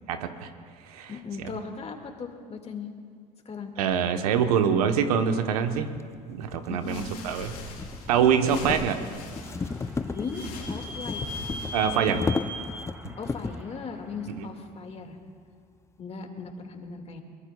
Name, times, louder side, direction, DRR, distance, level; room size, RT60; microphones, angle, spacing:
voice 1, 0.1-0.5 0.9-1.1 1.4-1.5 3.8-5.9 6.3-7.5 8.1-9.0 11.7-12.2 14.3-14.4, right 7 dB, 85° right, 7 dB, 1.1 m, -24 dB
voice 2, 1.1-2.9 3.5-3.9 6.7-7.1 8.4-9.0 10.1-11.4 13.2-15.2 16.0-17.2, left 5 dB, 35° left, 4 dB, 2.0 m, -38 dB
sound 1, 4.9-5.0 5.7-13.7, left 4 dB, 15° left, 0.4 m, -35 dB
sound 2, 6.8-12.5, left 3 dB, 85° left, 4.6 m, -44 dB
Vehicle / Squeak, 9.0-14.3, equal, 10° right, 2.3 m, -40 dB
23.0 x 21.5 x 2.3 m, 2.1 s
hypercardioid pair, 75°, 19 cm